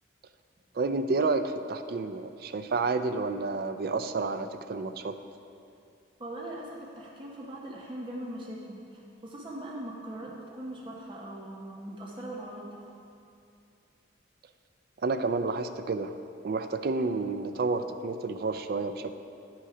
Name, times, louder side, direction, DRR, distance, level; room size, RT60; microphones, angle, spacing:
voice 1, 0.7-5.2 15.0-16.2 16.4-19.1, right 3 dB, 50° right, 10 dB, 0.4 m, -30 dB
voice 2, 6.2-12.7, right 1 dB, 25° right, -3 dB, 0.7 m, -40 dB
9.8 x 5.8 x 4.8 m, 2.6 s
head